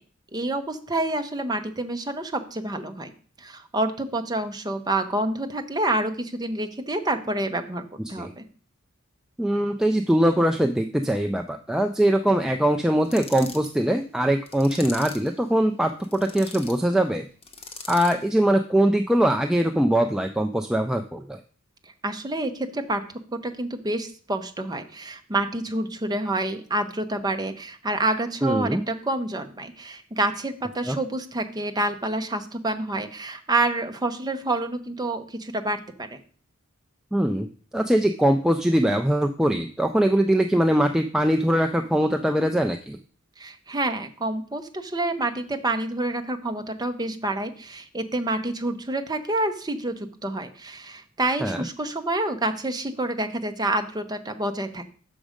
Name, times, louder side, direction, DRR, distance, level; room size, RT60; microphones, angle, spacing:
voice 1, 0.3-3.1 3.4-7.8 8.1-8.4 22.0-23.0 23.3-36.2 43.4-54.8, right 2 dB, 20° right, 6 dB, 0.7 m, -28 dB
voice 2, 9.4-17.3 17.9-21.4 28.4-28.8 30.9-31.0 37.1-37.5 37.7-43.0 51.4-51.6, right 1 dB, 5° right, 5 dB, 0.3 m, -22 dB
sound 1, 13.0-13.7 14.5-15.3 16.0-16.8 17.4-18.2, left 4 dB, 30° left, 0.9 m, -40 dB
6.3 x 6.1 x 5.0 m, 0.42 s
head